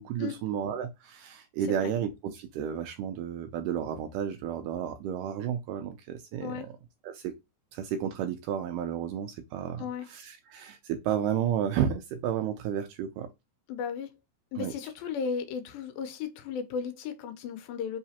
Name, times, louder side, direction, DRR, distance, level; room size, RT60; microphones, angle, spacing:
voice 1, 0.0-6.8 7.0-7.4 7.7-13.3 14.6-14.7, right 9 dB, 80° right, 2.0 m, -32 dB
voice 2, 13.7-14.1 14.5-18.0, left 6 dB, 80° left, 2.5 m, -35 dB
5.6 x 2.9 x 2.8 m
omnidirectional pair, 4.2 m